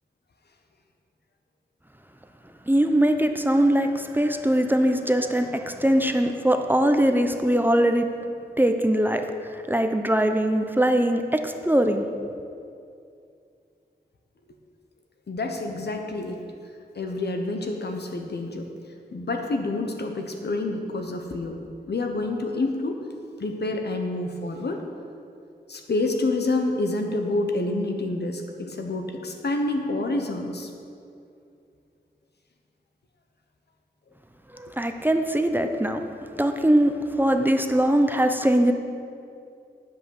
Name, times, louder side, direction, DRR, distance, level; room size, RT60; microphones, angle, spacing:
voice 1, 2.7-8.1 8.6-12.0 34.5-36.0 36.4-38.7, right 1 dB, 10° right, 6 dB, 0.6 m, -21 dB
voice 2, 15.3-16.4 16.9-18.7 19.1-23.0 23.4-24.8 25.7-30.7, left 2 dB, 75° left, 3 dB, 1.0 m, -28 dB
10.0 x 5.7 x 6.5 m, 2.5 s
wide cardioid pair, 70°, 17 cm